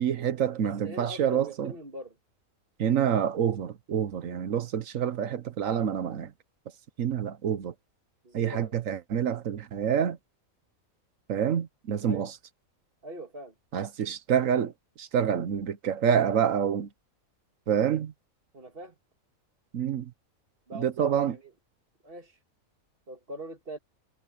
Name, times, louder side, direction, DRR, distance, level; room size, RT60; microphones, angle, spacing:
voice 1, 0.0-1.7 2.8-6.3 7.0-7.7 8.3-10.2 11.3-12.3 13.7-14.7 15.0-16.9 17.7-18.1 19.7-20.1 20.7-21.4, right 8 dB, 70° right, 1.3 m, -27 dB
voice 2, 0.6-2.2 8.2-8.7 12.0-12.3 13.0-13.5 18.5-19.0 20.7-21.5 22.0-22.4 23.1-23.8, right 1 dB, 40° right, 2.2 m, -42 dB
omnidirectional pair, 1.5 m